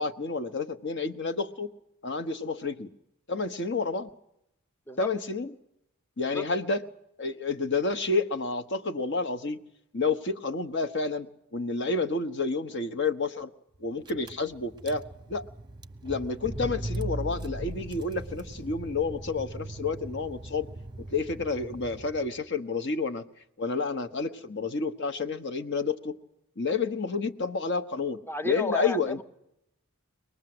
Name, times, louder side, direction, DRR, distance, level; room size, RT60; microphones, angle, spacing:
voice 1, 0.0-1.7 2.0-2.9 3.3-4.1 5.0-5.5 6.2-6.8 7.2-9.6 9.9-13.5 13.8-15.4 16.0-20.7 21.1-23.2 23.6-26.2 26.6-29.2, left 4 dB, 50° left, 10 dB, 1.2 m, -30 dB
Car / Engine, 13.7-13.8 14.0-22.4, right 1 dB, 20° right, 0.9 m, -39 dB
voice 2, 28.3-29.2, left 2 dB, 10° left, 10 dB, 0.8 m, -32 dB
24.0 x 19.5 x 7.9 m, 0.79 s
head